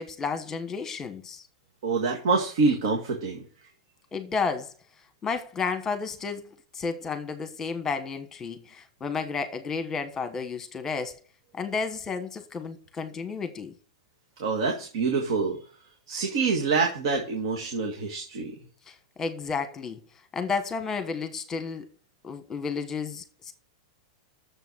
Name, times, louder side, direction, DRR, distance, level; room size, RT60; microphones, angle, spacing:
voice 1, 0.0-1.4 4.1-4.7 5.2-6.5 6.7-11.1 11.5-13.7 18.9-20.0 20.3-21.9 22.2-23.5, left 5 dB, 15° left, 1.2 m, -32 dB
voice 2, 1.8-3.4 14.4-15.6 16.1-18.6, right 4 dB, 65° right, 1.9 m, -26 dB
7.0 x 6.8 x 6.2 m
supercardioid pair, 150°, 3 cm